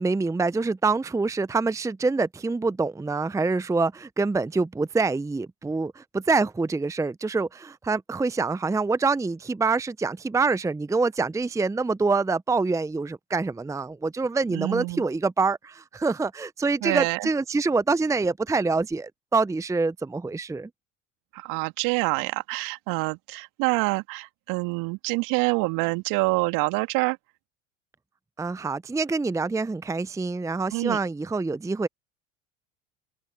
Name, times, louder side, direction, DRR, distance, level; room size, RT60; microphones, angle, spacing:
voice 1, 0.0-20.7 28.4-31.9, right 3 dB, 10° right, 0.8 m, -26 dB
voice 2, 14.5-15.0 16.8-17.3 21.3-27.2 30.7-31.0, right 26 dB, 60° right, 2.2 m, -26 dB
hypercardioid pair, 75°, 38 cm